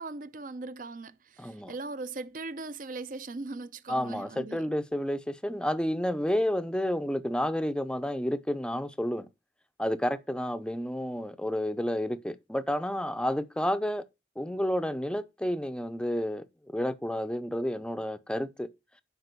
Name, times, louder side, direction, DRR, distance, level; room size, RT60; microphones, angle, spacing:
voice 1, 0.0-4.7, right 3 dB, 50° right, 0.7 m, -39 dB
voice 2, 1.4-1.7 3.9-9.3 9.8-14.0 14.4-16.5 16.7-18.7, equal, 5° left, 0.6 m, -30 dB
8.1 x 5.3 x 6.7 m
head